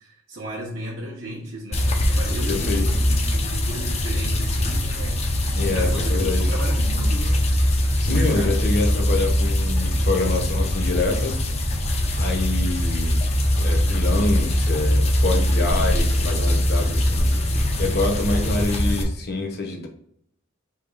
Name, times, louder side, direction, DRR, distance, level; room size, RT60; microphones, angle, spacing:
voice 1, 0.0-7.4 8.0-8.6, right 1 dB, 50° right, -7 dB, 1.0 m, -35 dB
sound 1, 1.7-19.0, left 1 dB, 30° left, 0.6 m, -22 dB
voice 2, 2.5-2.9 5.5-6.4 8.0-11.4 12.1-13.2 13.6-19.9, left 2 dB, 50° left, 2 dB, 1.0 m, -26 dB
3.5 x 3.0 x 4.7 m, 0.73 s
head